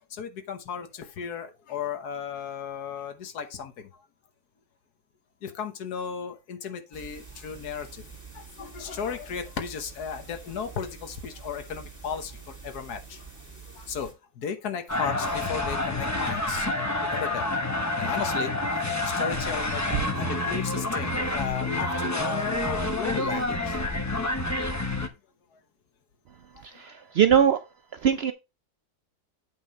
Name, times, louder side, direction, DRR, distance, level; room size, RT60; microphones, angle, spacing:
voice 1, 0.1-3.9 5.4-8.0 8.3-13.2 13.7-16.7 17.0-17.4 18.0-18.5 19.0-23.8 26.7-26.8, left 6 dB, 85° left, 1.5 m, -35 dB
sound 1, 6.9-14.1, right 5 dB, 10° right, 2.3 m, -46 dB
sound 2, 14.9-25.1, left 2 dB, 15° left, 0.5 m, -28 dB
voice 2, 26.7-27.6 28.0-28.3, right 8 dB, 65° right, 0.6 m, -21 dB
8.3 x 3.7 x 5.5 m
omnidirectional pair, 1.6 m